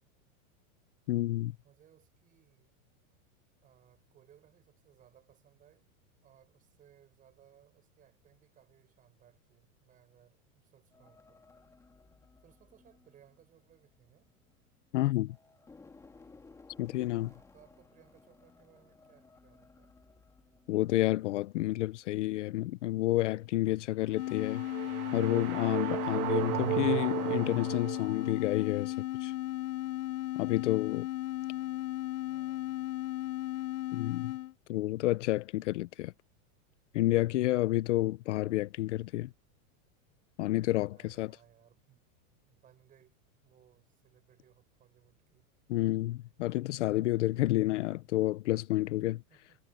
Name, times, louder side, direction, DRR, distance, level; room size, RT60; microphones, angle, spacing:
voice 1, 1.1-1.5 14.9-15.4 16.8-17.3 20.7-24.6 25.1-29.3 30.4-31.1 33.9-34.3 34.7-36.1 36.9-39.3 40.4-41.3 45.7-49.2, left 16 dB, 55° left, 0.7 m, -30 dB
voice 2, 1.6-2.7 3.6-5.9 6.2-11.5 12.4-14.3 17.1-19.9 31.4-31.9 32.2-32.9 40.9-42.1 42.4-43.2 43.4-45.5 49.3-49.6, right 10 dB, 20° right, 6.7 m, -64 dB
sound 1, 10.9-14.9 15.3-22.0 22.4-22.6, left 3 dB, 5° left, 3.0 m, -59 dB
sound 2, 24.1-34.5, left 15 dB, 90° left, 1.6 m, -35 dB
sound 3, 24.2-28.5, right 17 dB, 90° right, 0.6 m, -35 dB
supercardioid pair, 175°, 42 cm